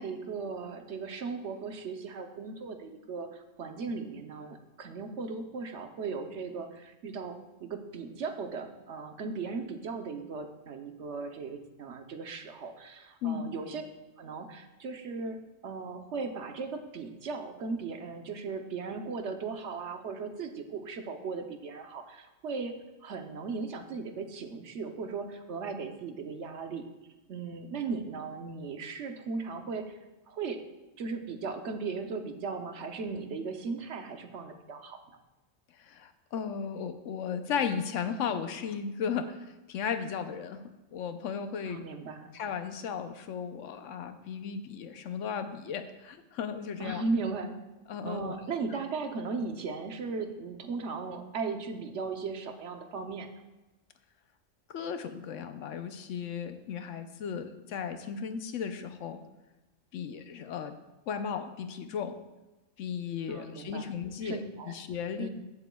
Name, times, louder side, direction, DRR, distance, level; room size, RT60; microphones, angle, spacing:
voice 1, 0.0-13.9 14.2-15.4 15.6-22.7 23.0-26.9 27.3-30.0 30.3-30.6 31.0-35.2 41.7-42.3 46.8-47.6 48.0-53.3 63.3-63.9 64.2-64.7 65.2-65.3, right 4 dB, 65° right, 6 dB, 1.0 m, -37 dB
voice 2, 35.9-39.4 39.7-40.6 40.9-41.8 42.3-47.0 47.9-48.3 54.7-59.2 59.9-60.7 61.1-62.2 62.8-64.4 64.7-65.3, left 7 dB, 75° left, 9 dB, 1.0 m, -35 dB
15.5 x 7.0 x 2.3 m, 1.1 s
omnidirectional pair, 1.3 m